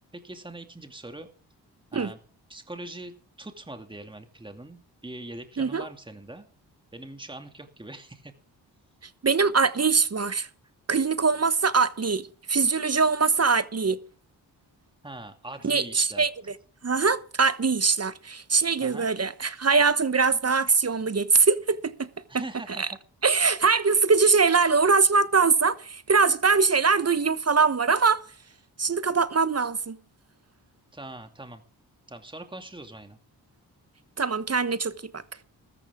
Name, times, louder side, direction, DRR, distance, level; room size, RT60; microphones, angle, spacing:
voice 1, 0.1-1.3 1.9-2.2 2.5-6.4 6.9-8.3 15.0-16.3 18.8-19.1 22.3-23.0 30.9-31.6 32.1-33.2, right 1 dB, 10° right, 2.5 m, -42 dB
voice 2, 9.2-10.5 10.9-14.0 15.6-16.3 16.8-22.1 22.3-22.4 22.8-22.9 23.2-28.2 28.8-30.0 34.2-35.2, right 4 dB, 35° right, 1.1 m, -22 dB
15.0 x 13.5 x 3.7 m
supercardioid pair, 40°, 45 cm